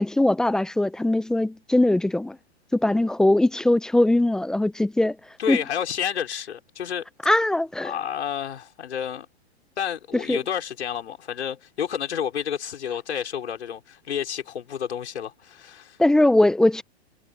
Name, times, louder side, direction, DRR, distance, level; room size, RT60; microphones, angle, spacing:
voice 1, 0.0-2.4 2.7-5.2 5.5-5.6 7.3-7.9 10.3-10.4 16.0-16.8, left 1 dB, ahead, 0.4 m, -20 dB
voice 2, 5.4-7.1 7.8-9.3 9.8-16.0, left 8 dB, 80° left, 5.1 m, -30 dB
hypercardioid pair, 135°, 33 cm